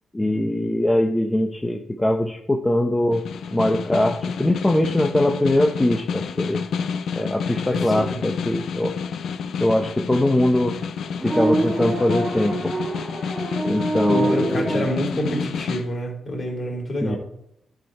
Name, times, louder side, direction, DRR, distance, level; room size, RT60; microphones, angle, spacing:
voice 1, 0.1-3.2 3.5-6.6 7.1-8.9 9.6-10.7 11.2-12.7 13.6-14.9 17.0-17.2, left 1 dB, 15° left, 2 dB, 0.8 m, -22 dB
Snare drum, 3.1-15.9, left 6 dB, 75° left, 0.6 m, -29 dB
voice 2, 7.7-8.2 13.6-17.2, equal, 40° left, -1 dB, 3.3 m, -27 dB
sound 1, 11.1-15.5, right 2 dB, 10° right, 2.6 m, -26 dB
10.5 x 4.7 x 4.5 m, 0.75 s
cardioid pair, 65°, 0 cm